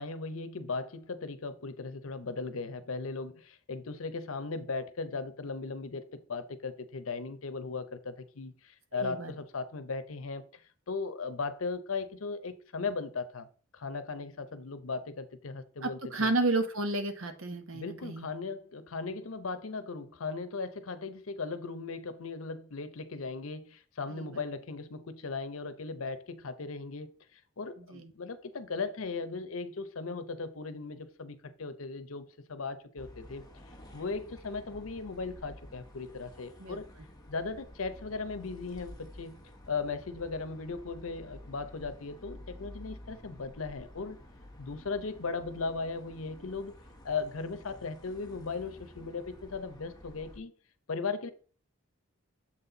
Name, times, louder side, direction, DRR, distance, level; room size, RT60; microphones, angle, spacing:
voice 1, 0.0-10.6 10.9-13.5 13.7-16.3 17.7-33.6 33.9-36.9 37.3-39.4 39.7-44.2 44.6-46.8 47.0-50.5 50.9-51.3, left 4 dB, 85° left, 0.8 m, -37 dB
voice 2, 8.9-9.3 15.8-18.3 24.1-24.3 27.8-28.1 36.6-36.8, right 2 dB, 75° right, 1.1 m, -32 dB
sound 1, 33.0-50.4, left 1 dB, 20° left, 1.1 m, -51 dB
7.5 x 4.2 x 3.9 m
head